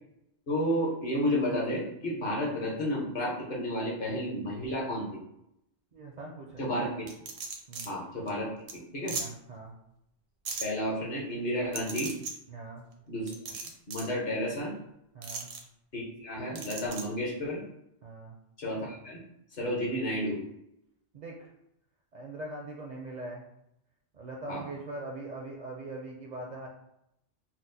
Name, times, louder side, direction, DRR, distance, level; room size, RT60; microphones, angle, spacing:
voice 1, 0.5-5.1 6.6-7.1 7.8-9.2 10.6-12.1 13.1-14.8 15.9-17.6 18.6-19.2 19.5-20.4 24.5-24.6, equal, 60° left, -3 dB, 1.0 m, -32 dB
voice 2, 5.9-6.7 7.7-7.9 9.1-9.7 12.5-12.9 15.1-15.5 18.0-18.4 21.1-21.5 22.1-23.4 24.1-26.7, right 2 dB, 55° right, -1 dB, 0.5 m, -41 dB
sound 1, 7.1-7.9 8.3-8.4 8.7-8.8 9.1-9.2 10.4-10.6 11.7-12.3 13.3-14.1 15.2-15.6 16.5-17.0, right 4 dB, 80° right, 0.8 m, -37 dB
4.2 x 2.0 x 2.6 m, 0.81 s
omnidirectional pair, 1.1 m